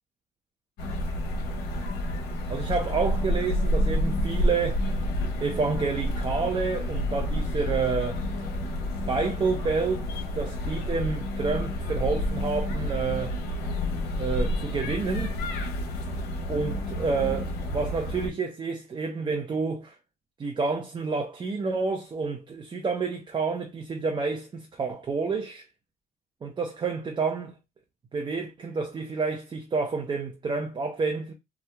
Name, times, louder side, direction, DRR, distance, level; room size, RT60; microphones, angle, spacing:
sound 1, 0.8-18.3, left 1 dB, 75° left, 1.0 m, -29 dB
voice 1, 2.5-4.8 5.4-8.2 9.1-13.4 14.1-15.4 16.5-19.9 20.4-25.6 26.4-27.5 28.1-31.3, right 4 dB, 30° right, 0.6 m, -29 dB
2.8 x 2.4 x 3.3 m
cardioid pair, 110°, 17 cm